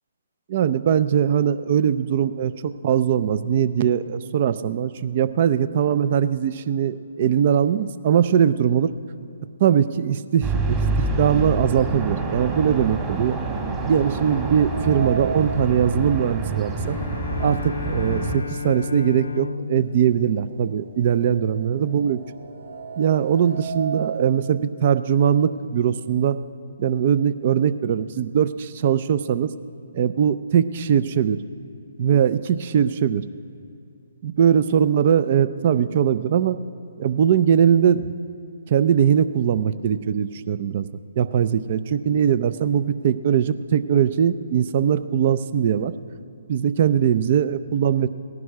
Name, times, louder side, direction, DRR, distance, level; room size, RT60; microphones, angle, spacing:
voice 1, 0.5-8.9 9.6-13.4 13.9-17.0 17.4-22.2 23.0-26.4 26.8-29.5 29.9-31.4 32.0-33.2 34.2-36.6 37.0-38.1 38.7-40.9 41.2-45.9 46.5-48.1, right 8 dB, 45° right, 14 dB, 0.5 m, -21 dB
sound 1, 10.4-18.4, right 3 dB, 20° right, 1.8 m, -27 dB
sound 2, 14.5-18.5 18.9-19.0 20.0-20.1 20.4-24.3, right 5 dB, 70° right, 1.5 m, -36 dB
Bowed string instrument, 16.8-21.4, left 5 dB, 75° left, 0.4 m, -34 dB
17.5 x 11.0 x 4.8 m, 2.6 s
figure-of-eight pair, 135°, 0 cm